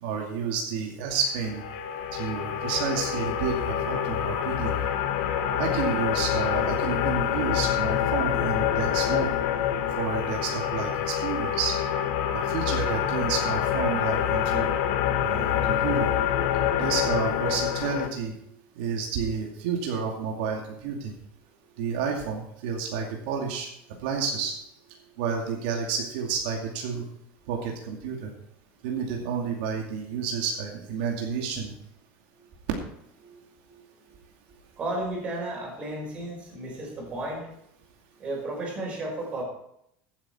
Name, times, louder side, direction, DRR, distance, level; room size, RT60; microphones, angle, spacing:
voice 1, 0.0-1.6 2.1-4.8 5.6-9.3 10.0-11.8 12.3-14.7 15.2-16.1 16.8-18.3 18.8-21.1 21.8-23.7 24.0-24.5 25.2-27.0 27.5-28.3 28.8-31.7, right 6 dB, 75° right, 0 dB, 2.5 m, -30 dB
sound 1, 1.3-18.1, left 9 dB, 70° left, 1.4 m, -26 dB
voice 2, 33.2-33.8 34.1-34.2 34.7-37.5 38.1-39.4, right 2 dB, 25° right, -1 dB, 4.9 m, -35 dB
15.5 x 9.0 x 4.4 m, 0.75 s
cardioid pair, 175°, 5 cm